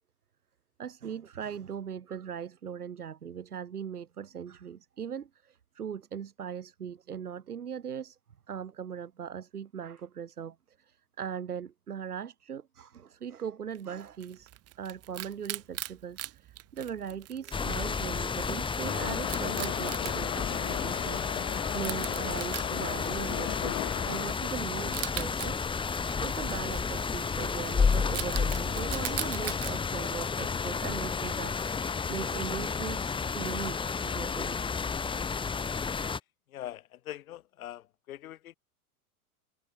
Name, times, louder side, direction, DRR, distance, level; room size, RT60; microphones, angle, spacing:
voice 1, 0.8-8.2 8.5-14.5 14.8-25.6 26.2-34.6, right 8 dB, 80° right, 2.1 m, -40 dB
Wild animals, 13.7-29.7, right 14 dB, 35° right, 2.0 m, -42 dB
sound 1, 17.5-36.2, left 5 dB, 10° left, 1.0 m, -31 dB
Subway metro underground, 18.8-24.3, left 23 dB, 50° left, 1.1 m, -37 dB
voice 2, 36.5-38.5, left 13 dB, 65° left, 1.8 m, -43 dB
figure-of-eight pair, 90°, 45 cm